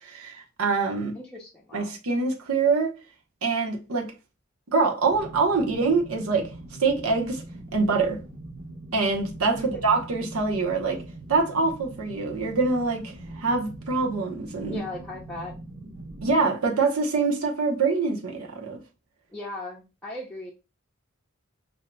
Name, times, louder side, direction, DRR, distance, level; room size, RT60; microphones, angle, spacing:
voice 1, 0.0-1.1 1.7-2.9 3.4-4.1 4.7-6.5 6.8-7.4 7.7-8.2 8.9-11.0 11.3-14.8 16.2-18.8, right 4 dB, 90° right, 0.9 m, -25 dB
voice 2, 1.1-1.9 9.6-9.9 14.7-15.5 19.3-20.5, left 2 dB, 5° left, 0.6 m, -38 dB
sound 1, 5.1-16.4, right 2 dB, 65° right, 1.1 m, -42 dB
5.4 x 2.7 x 2.2 m
head